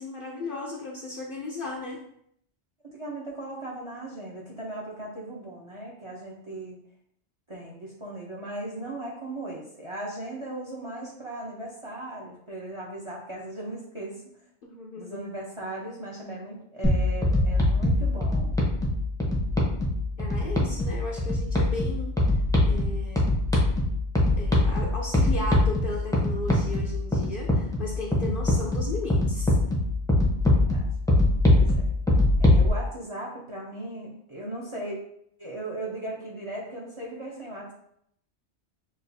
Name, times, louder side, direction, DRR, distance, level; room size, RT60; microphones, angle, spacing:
voice 1, 0.0-2.0 14.6-15.3 20.2-23.3 24.4-29.6, left 2 dB, 60° left, -3 dB, 0.7 m, -36 dB
voice 2, 2.8-6.8 7.5-14.2 15.0-18.6 30.7-30.8 31.5-31.8 32.4-35.0 35.4-37.7, right 1 dB, 35° right, -3 dB, 0.7 m, -37 dB
sound 1, 16.8-32.7, left 2 dB, 5° left, 0.6 m, -23 dB
6.2 x 2.4 x 2.7 m, 0.70 s
omnidirectional pair, 1.2 m